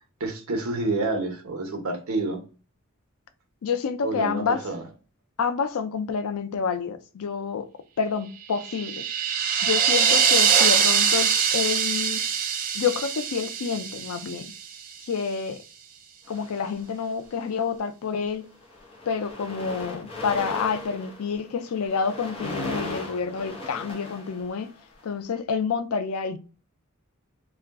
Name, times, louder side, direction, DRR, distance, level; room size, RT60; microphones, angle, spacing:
voice 1, 0.2-2.4 4.0-4.8, right 2 dB, 80° right, 0.9 m, -28 dB
voice 2, 3.6-4.6 5.4-9.1 9.6-12.2 12.7-14.5 15.0-15.6 16.3-18.5 19.1-24.7 25.0-26.4, left 6 dB, 85° left, 0.4 m, -28 dB
sound 1, 8.5-14.7, right 7 dB, 40° right, 0.4 m, -23 dB
sound 2, 16.3-17.3 18.0-18.2 18.5-25.0, left 2 dB, 25° left, 0.7 m, -38 dB
2.4 x 2.2 x 3.5 m
head